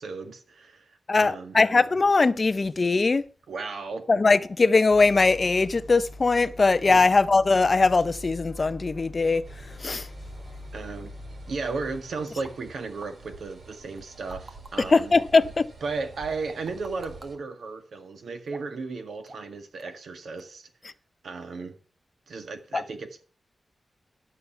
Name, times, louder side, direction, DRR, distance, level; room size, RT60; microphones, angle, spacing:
voice 1, 0.0-1.6 3.5-4.1 6.9-7.1 10.7-11.1 11.5-15.1 15.8-20.7 21.2-21.7 22.3-23.2, right 4 dB, 80° right, 1.7 m, -35 dB
voice 2, 1.1-3.2 4.1-9.4 9.8-10.1 14.9-15.7 22.7-22.8, left 3 dB, 35° left, 0.5 m, -21 dB
sound 1, 4.9-12.0, left 1 dB, 10° left, 2.2 m, -43 dB
sound 2, 9.4-17.4, right 4 dB, 55° right, 2.1 m, -48 dB
sound 3, 12.4-12.5 13.0-13.1 14.0-15.0 16.3-17.3 18.5-18.8 19.3-19.5 19.8-20.1 20.4-20.5, right 2 dB, 35° right, 1.6 m, -46 dB
12.0 x 6.9 x 7.0 m
wide cardioid pair, 170°, 0 cm